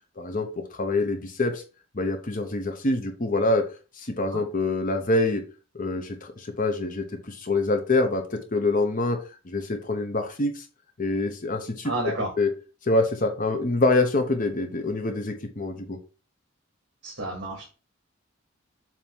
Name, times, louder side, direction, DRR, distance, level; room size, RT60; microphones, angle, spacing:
voice 1, 0.2-1.6 1.9-3.7 4.0-5.4 5.7-10.6 11.0-11.9 12.4-12.5 12.8-16.0, left 2 dB, 40° left, 5 dB, 0.9 m, -25 dB
voice 2, 11.8-12.3 17.0-17.7, right 1 dB, 55° right, -1 dB, 2.0 m, -30 dB
7.4 x 3.0 x 5.4 m, 0.34 s
head